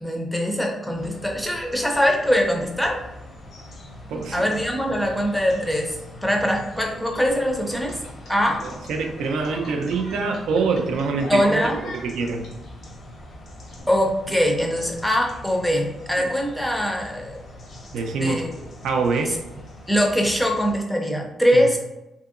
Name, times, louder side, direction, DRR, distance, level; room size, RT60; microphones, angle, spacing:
voice 1, 0.0-3.0 4.3-6.0 6.2-8.0 8.3-8.6 11.3-11.8 13.9-17.4 18.1-18.7 19.3-19.4 19.9-21.8, equal, 5° left, 0 dB, 0.5 m, -22 dB
sound 1, 0.9-20.8, left 1 dB, 50° left, 0.6 m, -42 dB
voice 2, 4.1-4.5 8.6-11.6 11.9-12.5 17.9-18.4 18.8-19.4 21.5-21.6, right 4 dB, 85° right, 3 dB, 0.4 m, -25 dB
sound 2, 7.7-12.5 13.7-13.8, left 1 dB, 90° left, 1.2 m, -39 dB
2.8 x 2.7 x 2.4 m, 0.95 s
cardioid pair, 125°, 0 cm